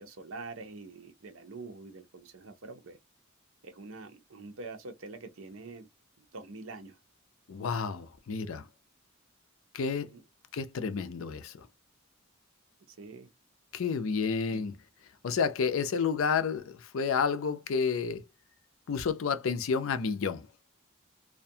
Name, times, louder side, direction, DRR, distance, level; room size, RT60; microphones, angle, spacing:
voice 1, 0.0-3.0 3.6-5.9 6.2-7.0 10.1-10.2 12.9-13.3 14.5-14.6, right 3 dB, 80° right, 0.7 m, -45 dB
voice 2, 7.5-8.7 9.7-10.1 10.5-11.7 13.7-14.7 15.2-18.2 18.9-20.5, left 5 dB, 80° left, 0.4 m, -30 dB
2.4 x 2.2 x 2.6 m
head